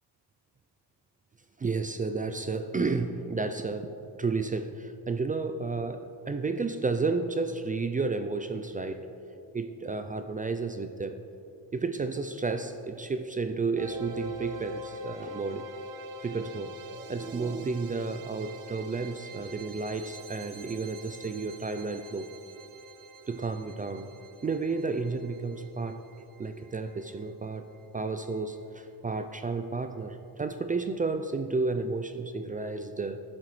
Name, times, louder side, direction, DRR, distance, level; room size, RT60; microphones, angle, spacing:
voice 1, 1.6-3.9 4.2-9.1 9.5-11.2 11.7-15.7 16.2-22.3 23.3-24.1 24.4-26.0 26.4-27.7 27.9-33.2, right 4 dB, 20° right, 8 dB, 0.3 m, -32 dB
sound 1, 13.8-28.7, right 1 dB, 45° right, 0.8 m, -45 dB
12.0 x 7.4 x 3.2 m, 2.7 s
cardioid pair, 80°, 44 cm